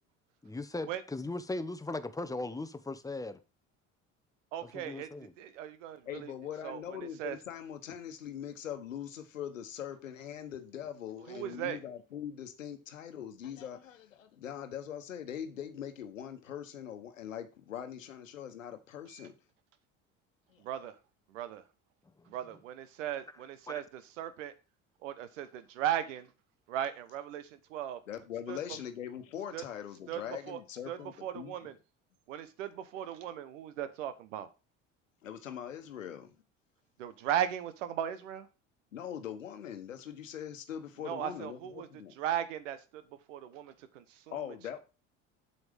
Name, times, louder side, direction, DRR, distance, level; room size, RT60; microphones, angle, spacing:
voice 1, 0.4-3.4 4.7-5.3 22.2-22.3 23.7-23.8, left 2 dB, 10° left, 0.9 m, -38 dB
voice 2, 4.5-6.3 6.6-6.8 7.2-7.4 11.3-11.8 19.1-19.3 20.6-21.0 21.3-21.6 22.3-24.5 25.0-26.3 26.7-28.0 28.5-28.6 29.5-29.6 30.1-30.2 30.5-30.6 30.9-31.8 32.3-34.5 37.0-38.5 41.0-43.0 43.3-44.5, right 11 dB, 75° right, 1.1 m, -37 dB
voice 3, 6.1-19.3 20.5-20.6 28.1-31.5 35.2-36.3 38.9-42.1 44.3-44.8, left 9 dB, 90° left, 1.2 m, -42 dB
7.9 x 7.0 x 3.6 m
hypercardioid pair, 65°, 38 cm